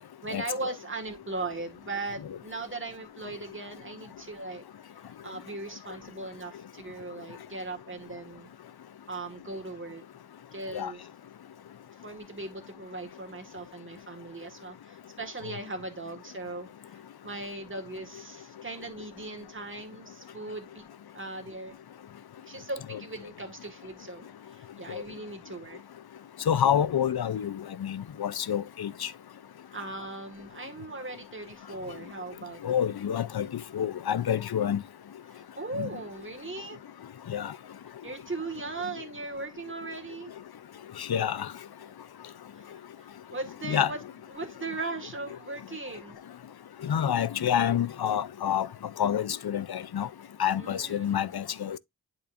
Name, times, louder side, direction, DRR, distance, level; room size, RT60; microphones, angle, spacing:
voice 1, 0.2-4.6 4.9-8.5 9.1-10.0 10.5-11.1 12.0-20.8 21.1-21.7 22.5-25.8 29.7-32.9 35.3-36.8 38.0-40.3 42.5-42.8 43.3-44.0 44.3-46.2 50.6-51.3, right 2 dB, 30° right, 1.7 m, -39 dB
voice 2, 26.5-29.1 32.6-34.8 35.8-35.9 37.3-37.5 41.0-41.5 43.7-43.9 46.8-48.7 49.0-50.1 50.4-51.8, left 9 dB, 75° left, 0.6 m, -28 dB
10.5 x 4.4 x 2.5 m
wide cardioid pair, 60°, 38 cm